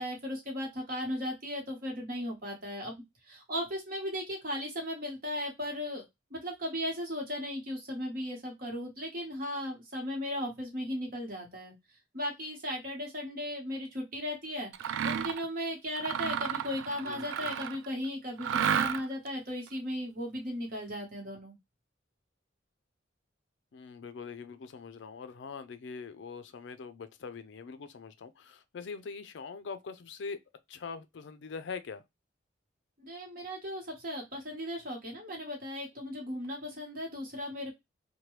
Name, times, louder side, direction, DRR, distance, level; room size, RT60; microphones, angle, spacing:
voice 1, 0.0-2.9 3.3-6.0 6.3-11.7 12.1-21.5 33.0-37.7, left 1 dB, 45° right, 1.1 m, -36 dB
Mechanisms, 14.7-15.4 15.9-17.9 18.4-19.3, right 8 dB, 80° right, 0.3 m, -32 dB
voice 2, 17.0-17.5 23.7-30.4 30.7-32.0, left 5 dB, 65° left, 0.4 m, -43 dB
2.9 x 2.2 x 3.1 m
head